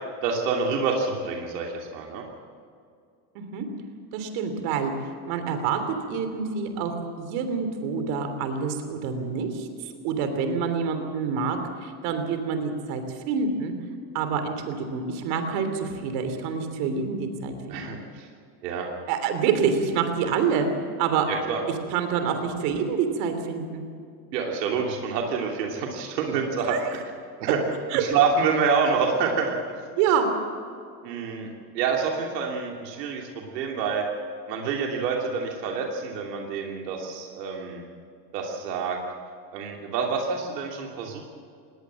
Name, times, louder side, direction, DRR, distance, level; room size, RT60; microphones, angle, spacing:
voice 1, 0.2-2.2 17.7-18.3 18.6-18.9 21.3-21.6 24.3-27.0 27.4-27.6 28.0-29.6 31.0-34.1 34.5-37.8 38.3-39.0 39.5-41.2, right 5 dB, 90° right, 0 dB, 2.9 m, -27 dB
voice 2, 3.3-3.7 4.1-4.9 5.3-13.7 14.1-18.0 19.1-20.7 21.0-21.3 21.9-23.8 26.7-26.8 27.9-28.0 30.0-30.3, right 6 dB, 70° right, 7 dB, 3.3 m, -27 dB
19.5 x 19.0 x 7.5 m, 2.3 s
supercardioid pair, 125°, 47 cm